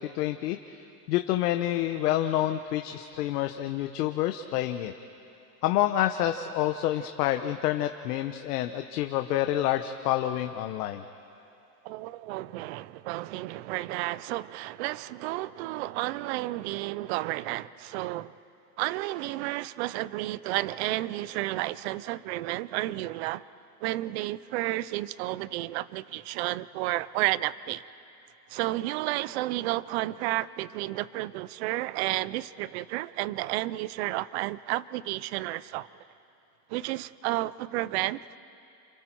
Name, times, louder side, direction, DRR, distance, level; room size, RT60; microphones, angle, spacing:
voice 1, 0.0-4.9 5.6-11.0, left 13 dB, 70° left, 7 dB, 1.0 m, -28 dB
voice 2, 11.8-18.3 18.8-23.4 23.8-27.8 28.5-35.9 36.7-38.4, right 17 dB, 45° right, 19 dB, 0.5 m, -31 dB
29.0 x 27.0 x 4.6 m, 2.7 s
supercardioid pair, 150°, 49 cm